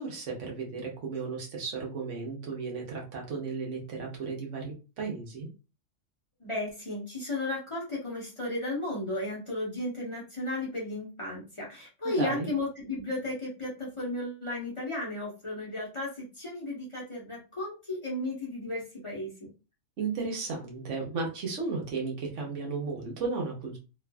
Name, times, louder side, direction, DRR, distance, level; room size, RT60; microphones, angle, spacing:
voice 1, 0.0-5.5 12.0-12.5 20.0-23.8, right 4 dB, 75° right, 0 dB, 1.2 m, -34 dB
voice 2, 6.4-19.5, left 2 dB, 30° left, -5 dB, 0.9 m, -34 dB
3.1 x 2.4 x 2.2 m, 0.31 s
omnidirectional pair, 1.3 m